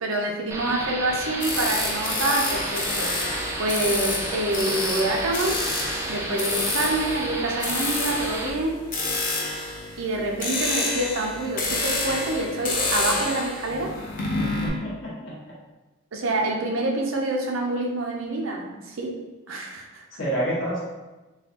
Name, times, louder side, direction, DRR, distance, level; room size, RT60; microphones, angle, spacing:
voice 1, 0.0-3.1 3.6-5.6 6.1-8.8 10.0-13.9 16.1-19.1 19.5-20.0, right 2 dB, 85° right, 0 dB, 0.6 m, -27 dB
sound 1, 0.5-8.5, right 2 dB, 15° right, 0.3 m, -32 dB
sound 2, 1.4-14.7, left 2 dB, 45° left, 0.6 m, -28 dB
voice 2, 14.3-15.4 20.2-20.8, right 1 dB, 70° left, -7 dB, 1.3 m, -28 dB
3.9 x 2.3 x 2.8 m, 1.1 s
head